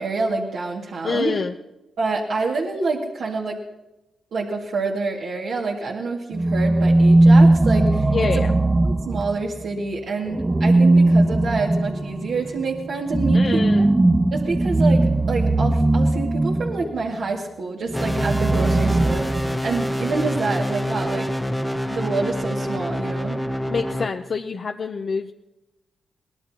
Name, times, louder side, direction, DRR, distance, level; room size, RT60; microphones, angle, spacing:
voice 1, 0.0-1.3 2.0-3.6 4.3-8.1 8.3-8.5 8.8-13.9 14.3-21.3 21.9-23.4, right 3 dB, 75° right, -3 dB, 2.2 m, -27 dB
voice 2, 1.0-1.5 8.1-8.5 13.3-13.9 23.7-25.3, left 5 dB, 50° left, 4 dB, 0.7 m, -26 dB
sound 1, 6.3-9.6 10.3-16.9 17.9-19.8, right 2 dB, 15° right, 0.5 m, -18 dB
sound 2, 17.9-24.1, equal, 5° left, 0.9 m, -26 dB
23.0 x 18.0 x 2.9 m, 0.96 s
cardioid pair, 100°, 0 cm